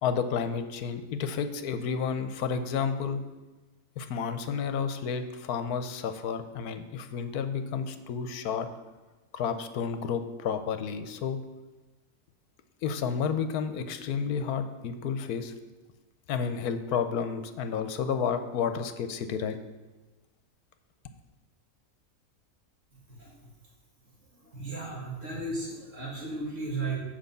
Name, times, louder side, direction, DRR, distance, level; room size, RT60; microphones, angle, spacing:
voice 1, 0.0-3.2 4.0-8.7 9.3-11.4 12.8-15.5 16.3-19.6, left 6 dB, 75° left, 9 dB, 1.2 m, -31 dB
voice 2, 24.4-27.0, right 3 dB, 55° right, -3 dB, 2.2 m, -35 dB
7.7 x 5.2 x 6.7 m, 1.2 s
omnidirectional pair, 1.6 m